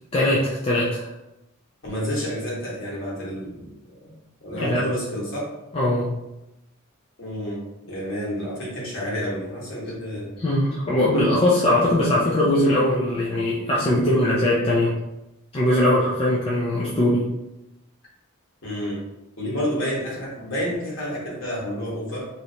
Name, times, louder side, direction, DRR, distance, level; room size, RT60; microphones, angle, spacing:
voice 1, 0.1-1.1 4.5-4.8 5.7-6.1 10.4-14.9 15.5-17.3, left 1 dB, 25° left, -6 dB, 0.4 m, -21 dB
voice 2, 1.8-3.7 4.4-5.5 7.2-10.4 18.6-19.0 19.4-22.3, equal, 60° left, -6 dB, 1.3 m, -29 dB
3.1 x 2.6 x 2.8 m, 0.94 s
head